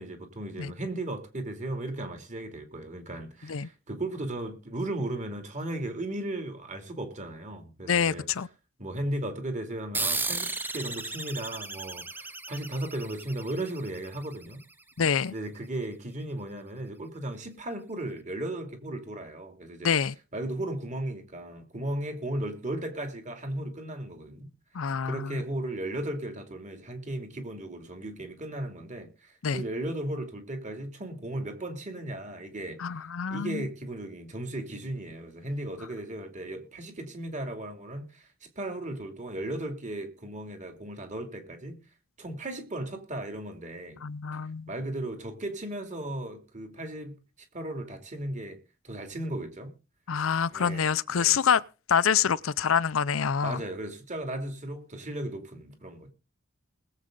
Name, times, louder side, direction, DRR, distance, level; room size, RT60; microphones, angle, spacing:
voice 1, 0.0-8.3 8.8-14.6 15.3-19.9 20.3-24.5 25.0-41.8 42.2-44.0 44.3-44.4 44.7-47.2 47.5-48.6 48.8-49.7 50.5-51.4 53.4-56.1, right 1 dB, 35° right, 2.7 m, -36 dB
voice 2, 7.9-8.5 15.0-15.3 19.8-20.1 24.7-25.4 29.4-29.6 32.8-33.6 44.0-44.7 50.1-51.6 51.9-53.6, left 7 dB, 80° left, 0.6 m, -26 dB
sound 1, 9.9-14.9, right 3 dB, 10° right, 0.7 m, -35 dB
20.5 x 7.8 x 3.9 m
head